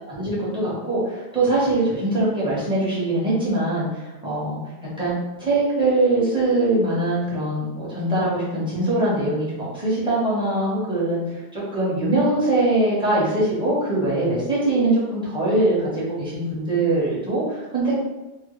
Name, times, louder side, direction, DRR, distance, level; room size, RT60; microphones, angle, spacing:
voice 1, 0.1-3.9 4.2-4.6 5.0-11.2 11.5-18.0, right 2 dB, 5° right, -9 dB, 0.8 m, -22 dB
2.1 x 2.1 x 3.0 m, 1.0 s
omnidirectional pair, 1.1 m